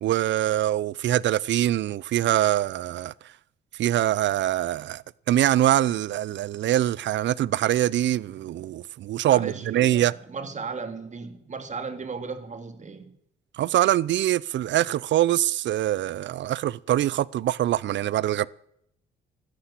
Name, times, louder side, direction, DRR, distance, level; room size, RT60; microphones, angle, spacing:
voice 1, 0.0-3.1 3.8-10.1 13.6-18.5, right 13 dB, 65° right, 0.6 m, -24 dB
voice 2, 9.3-13.1, right 4 dB, 35° right, 2.4 m, -36 dB
14.5 x 10.0 x 8.4 m
cardioid pair, 90°, 20 cm